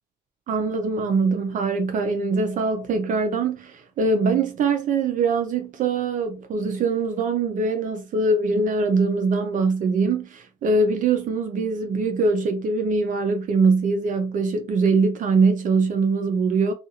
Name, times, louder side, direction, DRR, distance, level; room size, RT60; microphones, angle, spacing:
voice 1, 0.5-16.7, right 4 dB, 50° right, 0.5 m, -22 dB
2.5 x 2.4 x 2.8 m
cardioid pair, 110°, 17 cm